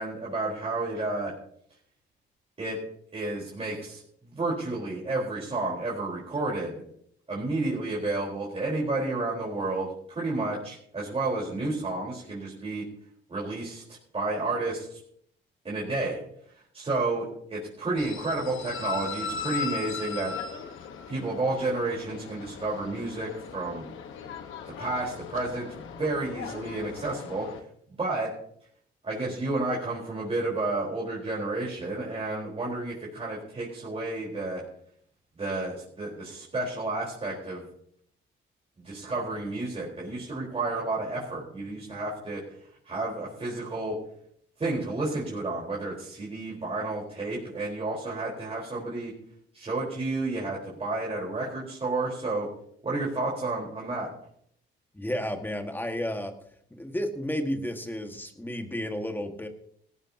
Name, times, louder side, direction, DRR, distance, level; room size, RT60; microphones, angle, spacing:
voice 1, 0.0-1.3 2.6-2.8 3.1-6.7 7.3-12.8 13.3-13.8 14.1-15.0 15.6-16.2 16.7-20.3 21.1-23.9 24.8-27.5 28.0-28.3 29.0-34.6 35.4-37.6 38.8-42.4 42.8-44.0 44.6-49.1 49.5-52.5 52.8-54.1, right 2 dB, 30° right, -5 dB, 4.4 m, -31 dB
sound 1, 18.0-27.6, left 6 dB, 85° left, 1.4 m, -38 dB
voice 2, 54.9-56.3 56.7-59.5, equal, 10° left, 5 dB, 1.8 m, -32 dB
17.5 x 15.5 x 2.9 m, 0.66 s
cardioid pair, 90°, 20 cm